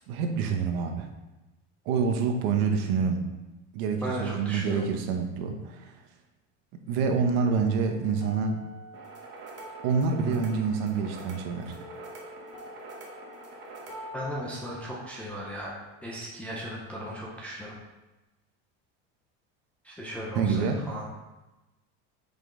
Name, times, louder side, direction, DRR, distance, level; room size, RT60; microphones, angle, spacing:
voice 1, 0.1-1.1 1.9-3.3 3.7-5.9 6.9-8.6 9.8-11.8 20.3-20.8, right 5 dB, 60° right, 5 dB, 0.9 m, -27 dB
voice 2, 4.0-4.8 14.1-15.7 16.0-17.8 19.8-21.1, equal, 5° left, -5 dB, 0.4 m, -36 dB
sound 1, 7.3-17.3, left 1 dB, 70° left, 2.0 m, -48 dB
sound 2, 8.9-14.1, right 3 dB, 30° right, 0.9 m, -45 dB
5.8 x 5.2 x 3.6 m, 1.1 s
cardioid pair, 175°, 36 cm